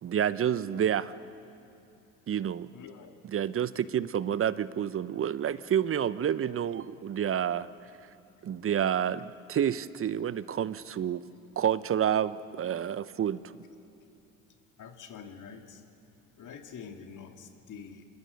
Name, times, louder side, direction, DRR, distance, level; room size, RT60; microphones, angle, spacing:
voice 1, 0.0-1.1 2.3-2.7 3.3-7.7 8.4-11.2 11.6-13.4, right 9 dB, 30° right, 17 dB, 0.7 m, -29 dB
voice 2, 2.7-3.1 10.0-10.1 14.8-15.8 16.4-18.0, left 6 dB, 45° left, 5 dB, 2.3 m, -46 dB
27.0 x 21.0 x 6.5 m, 2.7 s
hypercardioid pair, 70°, 42 cm